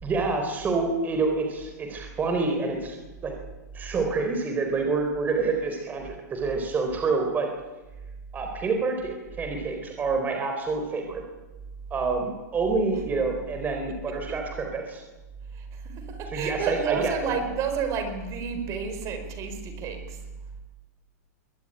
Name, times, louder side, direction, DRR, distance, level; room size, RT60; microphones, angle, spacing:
voice 1, 0.0-3.0 3.2-3.3 3.7-7.5 8.3-11.2 11.9-15.0 16.3-17.3, right 4 dB, 20° right, 4 dB, 4.0 m, -27 dB
voice 2, 14.1-14.4 15.5-20.2, right 5 dB, 35° right, 8 dB, 4.6 m, -31 dB
22.5 x 19.5 x 9.9 m, 1.1 s
supercardioid pair, 145°, 9 cm